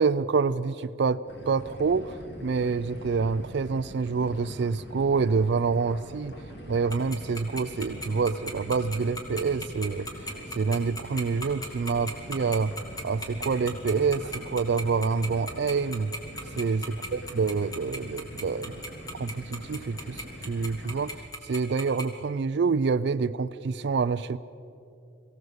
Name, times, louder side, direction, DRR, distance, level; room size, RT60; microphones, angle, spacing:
voice 1, 0.0-6.3 6.7-10.1 10.5-12.7 13.0-16.1 16.6-18.8 19.1-24.4, right 5 dB, 55° right, 11 dB, 0.4 m, -27 dB
sound 1, 1.3-21.1, equal, 55° left, 2.9 m, -43 dB
Tick-tock, 6.9-22.0, left 1 dB, 20° left, 2.3 m, -36 dB
23.0 x 16.0 x 8.0 m, 2.7 s
head